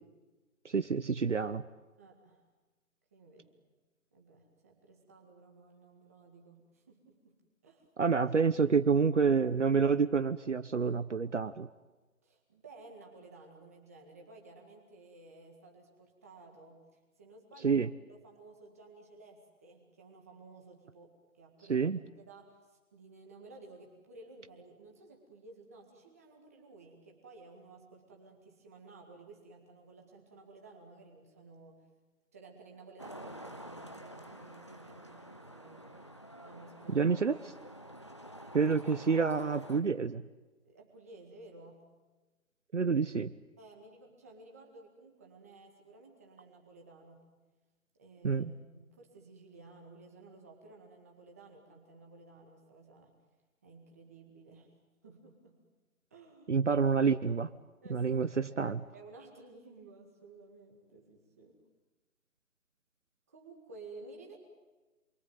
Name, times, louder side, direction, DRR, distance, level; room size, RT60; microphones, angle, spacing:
voice 1, 0.6-1.6 8.0-11.7 17.6-17.9 21.7-22.0 36.9-37.4 38.5-40.2 42.7-43.3 48.2-48.5 56.5-57.5 57.9-58.8, right 5 dB, 55° right, 12 dB, 1.0 m, -28 dB
voice 2, 2.0-2.4 3.1-3.5 4.1-7.4 7.6-7.9 12.2-17.8 18.1-21.9 22.2-31.9 32.3-37.2 40.6-41.9 42.9-43.0 43.6-47.3 48.0-48.5 48.7-53.2 53.6-54.7 55.0-55.6 56.1-56.6 57.8-58.1 58.5-61.6 63.3-64.4, right 3 dB, 10° right, 1 dB, 1.9 m, -55 dB
Traffic noise roadway noise, 33.0-39.8, equal, 20° left, 0.9 m, -49 dB
28.5 x 22.5 x 9.3 m, 1.2 s
hypercardioid pair, 175°, 42 cm